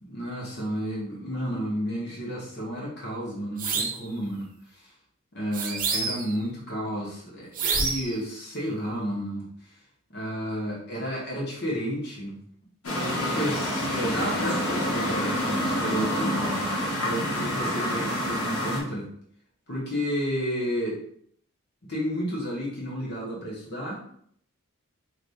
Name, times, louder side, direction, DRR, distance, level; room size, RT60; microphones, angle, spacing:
voice 1, 0.1-4.9 5.3-9.8 10.1-12.4 12.9-16.7 17.0-19.1 19.7-21.0 21.9-24.1, equal, 50° left, -4 dB, 1.6 m, -32 dB
sound 1, 3.6-4.0 5.5-6.4 7.5-8.2, right 4 dB, 40° right, 0.7 m, -28 dB
sound 2, 12.8-18.8, equal, 85° left, 1.3 m, -27 dB
4.9 x 3.2 x 2.7 m, 0.64 s
head